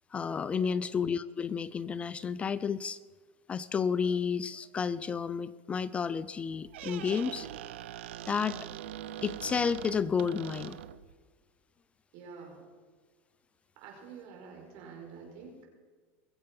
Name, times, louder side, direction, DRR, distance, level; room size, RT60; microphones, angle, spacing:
voice 1, 0.1-3.0 3.5-7.5 8.3-8.7 9.2-10.8, left 6 dB, 20° left, 16 dB, 0.3 m, -31 dB
Squeak, 6.5-11.1, right 11 dB, 85° right, 0.7 m, -42 dB
voice 2, 12.1-12.6 13.8-15.7, right 5 dB, 60° right, 0 dB, 5.2 m, -48 dB
22.0 x 7.9 x 5.4 m, 1.5 s
supercardioid pair, 135°, 6 cm